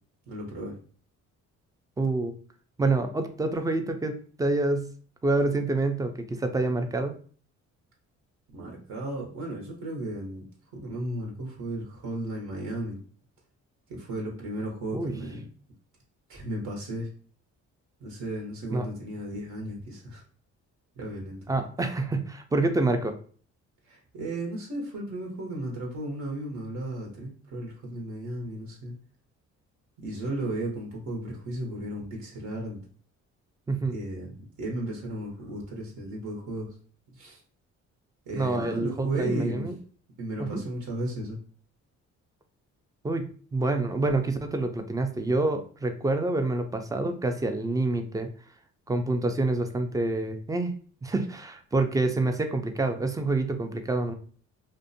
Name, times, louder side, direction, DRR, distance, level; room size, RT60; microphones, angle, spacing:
voice 1, 0.3-0.7 8.5-10.4 10.7-13.0 13.9-15.4 16.3-17.1 18.0-20.2 21.0-21.4 23.9-28.9 30.0-32.8 33.9-36.7 37.2-37.4 38.3-39.7 40.2-41.4, right 1 dB, 70° right, -1 dB, 0.9 m, -35 dB
voice 2, 2.0-2.3 2.8-4.9 5.2-7.1 14.9-15.2 18.7-18.9 21.5-23.1 33.7-34.0 38.4-39.7 40.4-40.6 43.0-48.3 48.9-50.7 51.0-54.1, right 2 dB, 10° right, 6 dB, 0.3 m, -27 dB
2.5 x 2.1 x 2.6 m, 0.44 s
cardioid pair, 90°, 30 cm